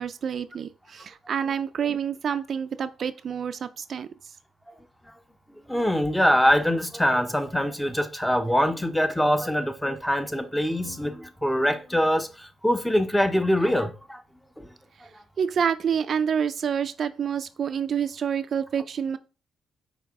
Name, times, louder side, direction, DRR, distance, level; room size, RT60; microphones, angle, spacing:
voice 1, 0.0-4.1 15.4-19.2, right 7 dB, 55° right, 0.3 m, -28 dB
voice 2, 5.7-14.2, equal, 5° left, 0.6 m, -23 dB
5.2 x 2.8 x 3.5 m
cardioid pair, 75°, 0 cm